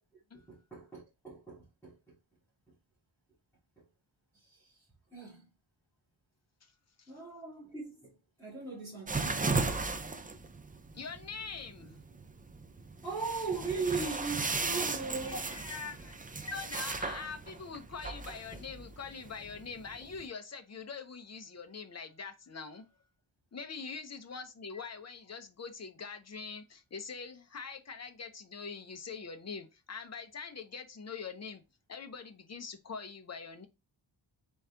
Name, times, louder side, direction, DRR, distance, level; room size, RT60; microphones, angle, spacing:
voice 1, 0.3-2.0 4.3-4.8 5.1-5.5 7.1-9.8 10.5-10.6 13.0-15.4 16.4-16.6, right 4 dB, 5° left, 2.4 m, -39 dB
sound 1, 9.1-20.3, right 3 dB, 20° right, 0.4 m, -36 dB
voice 2, 10.9-12.0 15.2-22.9 23.5-31.6 31.9-33.7, left 5 dB, 35° left, 0.7 m, -43 dB
4.1 x 3.7 x 3.4 m
wide cardioid pair, 115°, 48 cm